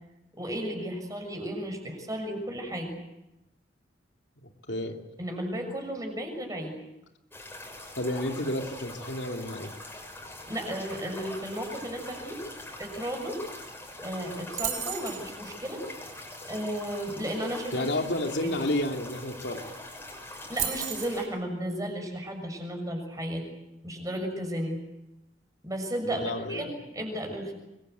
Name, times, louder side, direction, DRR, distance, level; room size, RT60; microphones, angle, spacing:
voice 1, 0.4-3.0 5.2-6.7 10.5-12.4 12.8-13.4 14.0-15.8 16.5-17.9 18.4-18.5 20.5-23.4 23.8-24.8 25.6-27.5, right 1 dB, 20° right, 4 dB, 6.6 m, -34 dB
voice 2, 4.4-5.0 8.0-9.7 17.7-19.7 26.1-26.7, left 1 dB, 80° left, 3 dB, 2.8 m, -31 dB
sound 1, 7.3-21.3, left 1 dB, 15° left, 6.0 m, -43 dB
sound 2, 14.6-15.2 19.2-19.3 19.5-19.8 20.6-21.2, right 8 dB, 45° right, 3.0 m, -32 dB
25.5 x 23.0 x 8.1 m, 0.94 s
head